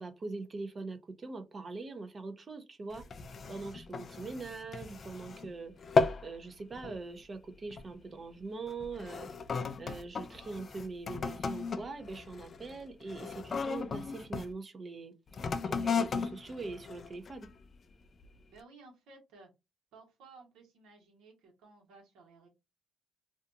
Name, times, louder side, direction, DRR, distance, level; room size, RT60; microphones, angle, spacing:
voice 1, 0.0-3.0 3.5-5.7 6.2-9.3 9.8-15.1 15.6-17.5, right 3 dB, 35° right, 8 dB, 0.6 m, -42 dB
sound 1, 2.9-5.5 5.8-6.3 6.7-7.0 7.7-7.9 8.7-14.5 15.3-17.6 18.2-18.3, left 5 dB, 45° left, 0.4 m, -35 dB
voice 2, 18.4-19.5 19.9-22.5, right 3 dB, 85° right, 1 dB, 1.2 m, -56 dB
2.6 x 2.3 x 2.6 m, 0.23 s
cardioid pair, 90°, 0 cm